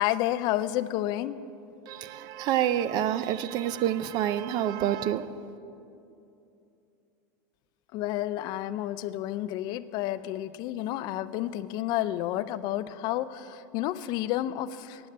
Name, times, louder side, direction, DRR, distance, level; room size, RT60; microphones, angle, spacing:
voice 1, 0.0-1.4 7.9-15.1, left 14 dB, 45° left, 15 dB, 0.4 m, -30 dB
voice 2, 1.9-5.3, right 11 dB, 40° right, 15 dB, 0.4 m, -28 dB
8.6 x 8.4 x 8.7 m, 2.7 s
supercardioid pair, 135°, 10 cm